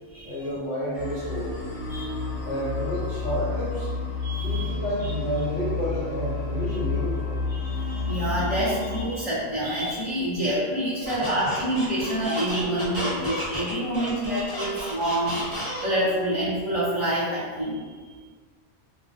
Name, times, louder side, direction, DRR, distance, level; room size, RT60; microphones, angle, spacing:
voice 1, 0.2-1.5 2.4-3.9 4.4-7.4 11.0-11.1, equal, 55° right, -8 dB, 0.9 m, -30 dB
sound 1, 0.9-9.0, left 3 dB, 80° left, 1.0 m, -30 dB
voice 2, 4.2-4.7 5.0-5.1 7.5-17.9, right 1 dB, 35° left, -12 dB, 0.6 m, -27 dB
Squeak, 11.0-16.1, equal, 25° right, 0.9 m, -32 dB
2.4 x 2.0 x 2.5 m, 1.5 s
omnidirectional pair, 1.2 m